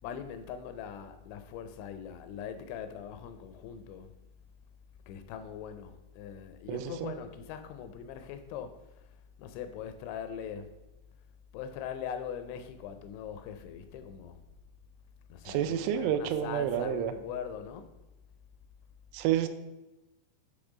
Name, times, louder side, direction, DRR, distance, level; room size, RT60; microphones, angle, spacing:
voice 1, 0.0-4.1 5.1-10.8 11.5-14.4 15.3-17.9, left 8 dB, 85° left, 2.8 m, -41 dB
voice 2, 6.7-7.1 15.5-17.1 19.1-19.5, right 10 dB, 85° right, 2.9 m, -29 dB
8.0 x 3.2 x 4.9 m
omnidirectional pair, 5.3 m